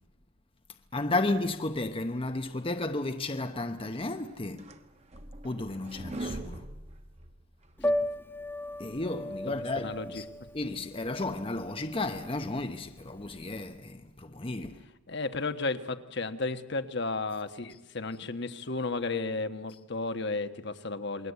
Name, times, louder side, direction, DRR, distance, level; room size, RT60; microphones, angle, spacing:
voice 1, 0.9-4.6 5.4-6.6 8.8-10.2 10.5-14.8, left 2 dB, 25° left, 0.9 m, -33 dB
sound 1, 4.1-7.8, right 2 dB, 30° right, 1.3 m, -42 dB
Piano, 7.8-13.7, left 1 dB, 10° left, 1.4 m, -35 dB
voice 2, 9.5-10.2 15.1-21.3, left 3 dB, 55° left, 1.3 m, -33 dB
28.0 x 22.0 x 8.2 m
head